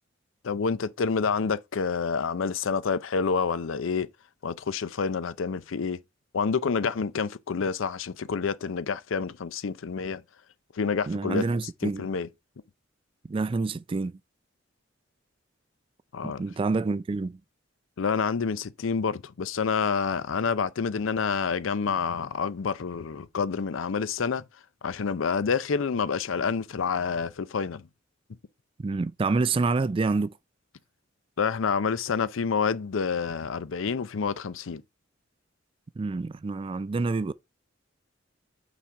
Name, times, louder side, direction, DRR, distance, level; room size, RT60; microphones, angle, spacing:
voice 1, 0.4-4.1 4.4-6.0 6.3-10.2 10.7-11.5 11.8-12.3 16.1-16.4 18.0-24.4 24.8-27.8 31.4-34.8, left 5 dB, 80° left, 0.5 m, -28 dB
voice 2, 11.1-12.1 13.3-14.2 16.2-17.4 28.8-30.3 36.0-37.3, right 3 dB, 25° right, 0.3 m, -27 dB
5.9 x 4.1 x 4.6 m
head